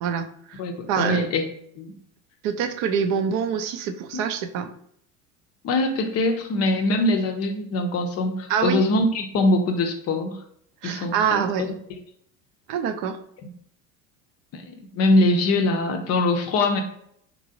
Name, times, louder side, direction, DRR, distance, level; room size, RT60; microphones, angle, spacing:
voice 1, 0.0-0.6 0.9-1.3 2.4-4.7 8.5-8.8 10.8-11.7 12.7-13.2, right 7 dB, 55° right, 8 dB, 0.5 m, -25 dB
voice 2, 0.6-1.4 1.8-1.9 4.1-4.3 5.6-10.4 10.8-12.0 14.5-16.8, left 2 dB, 40° left, 5 dB, 0.5 m, -23 dB
3.0 x 2.5 x 2.7 m, 0.68 s
hypercardioid pair, 80°, 40 cm